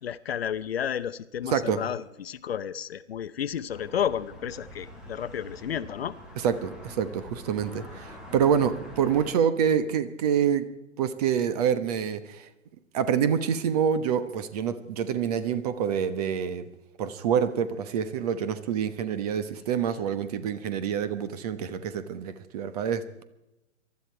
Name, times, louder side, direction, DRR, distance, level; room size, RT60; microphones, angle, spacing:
voice 1, 0.0-6.1, left 9 dB, 50° left, 14 dB, 0.8 m, -32 dB
sound 1, 3.7-9.3, equal, ahead, 0.4 m, -45 dB
voice 2, 6.4-10.6 11.0-12.5 12.9-16.6 17.0-23.2, right 8 dB, 30° right, 13 dB, 1.1 m, -27 dB
22.5 x 13.0 x 4.6 m, 0.92 s
figure-of-eight pair, 135°, 39 cm